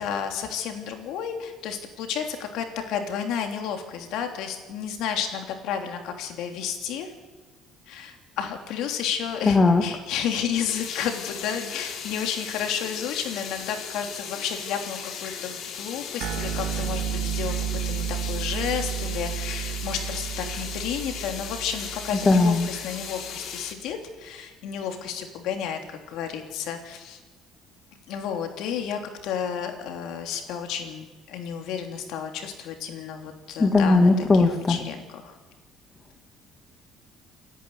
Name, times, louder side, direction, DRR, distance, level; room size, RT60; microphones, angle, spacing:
voice 1, 0.0-7.1 7.9-17.5 17.8-27.2 28.1-35.4, left 8 dB, 75° left, 4 dB, 3.2 m, -32 dB
voice 2, 9.4-9.8 22.2-22.7 33.6-34.8, left 3 dB, 20° left, 4 dB, 1.7 m, -18 dB
sound 1, 10.7-23.7, left 7 dB, 55° left, 2.9 m, -37 dB
sound 2, 16.2-23.0, right 9 dB, 85° right, 2.4 m, -32 dB
28.5 x 11.0 x 9.5 m, 1.3 s
cardioid pair, 130°, 0 cm